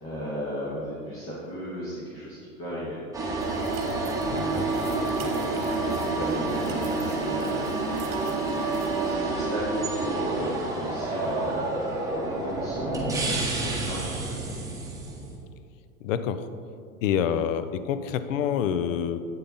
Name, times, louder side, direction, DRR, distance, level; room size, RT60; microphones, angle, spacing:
voice 1, 0.0-3.0 4.2-7.7 8.9-11.6 12.1-14.4, equal, 30° left, -7 dB, 1.9 m, -35 dB
sound 1, 3.1-15.4, right 2 dB, 5° right, 1.3 m, -29 dB
sound 2, 3.4-9.2, right 4 dB, 45° right, 1.3 m, -37 dB
voice 2, 4.3-4.7 16.0-16.5 17.0-19.3, left 8 dB, 60° left, 12 dB, 0.6 m, -27 dB
8.8 x 6.5 x 4.0 m, 2.3 s
hypercardioid pair, 105°, 45 cm